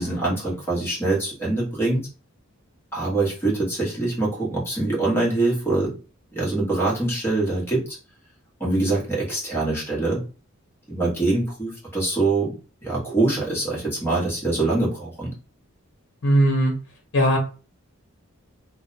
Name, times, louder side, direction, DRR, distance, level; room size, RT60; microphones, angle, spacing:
voice 1, 0.0-2.1 2.9-5.9 6.3-8.0 8.6-10.2 10.9-12.5 12.8-15.3, right 2 dB, 10° left, -5 dB, 1.2 m, -24 dB
voice 2, 16.2-16.7 17.1-17.4, right 1 dB, 55° left, 1 dB, 0.9 m, -19 dB
2.6 x 2.1 x 4.0 m, 0.35 s
head